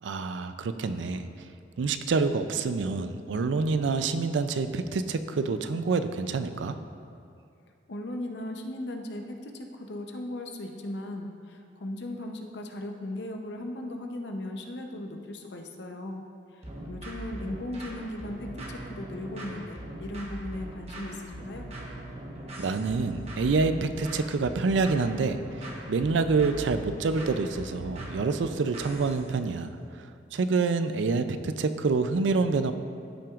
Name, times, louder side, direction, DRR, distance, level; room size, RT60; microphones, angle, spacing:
voice 1, 0.0-1.3 1.8-6.8 22.6-29.7 29.9-32.7, right 4 dB, 90° right, 10 dB, 0.4 m, -27 dB
voice 2, 7.9-16.2 16.5-21.7, left 1 dB, 70° left, 3 dB, 0.7 m, -37 dB
sound 1, 16.6-29.3, right 1 dB, 35° right, 1.1 m, -40 dB
13.5 x 5.8 x 2.4 m, 2.4 s
head